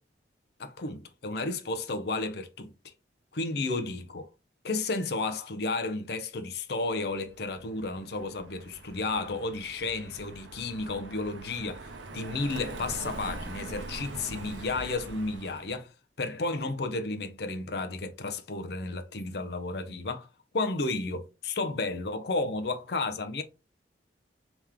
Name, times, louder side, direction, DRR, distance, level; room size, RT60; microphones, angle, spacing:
voice 1, 0.6-2.7 3.3-4.3 4.6-15.9 16.2-20.3 20.5-23.4, left 3 dB, 60° left, 0.6 m, -32 dB
Car passing by, 7.2-15.8, right 3 dB, 85° right, 0.7 m, -43 dB
3.6 x 3.0 x 3.4 m
head